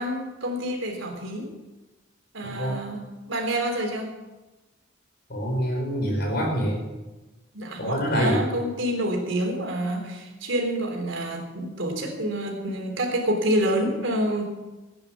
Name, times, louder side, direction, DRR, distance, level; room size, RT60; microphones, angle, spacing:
voice 1, 0.0-1.5 2.3-4.1 7.5-14.4, right 1 dB, 70° right, 2 dB, 3.4 m, -28 dB
voice 2, 2.4-2.7 5.3-6.8 7.8-8.5, equal, 55° left, 1 dB, 4.8 m, -25 dB
15.5 x 9.8 x 7.3 m, 1.1 s
head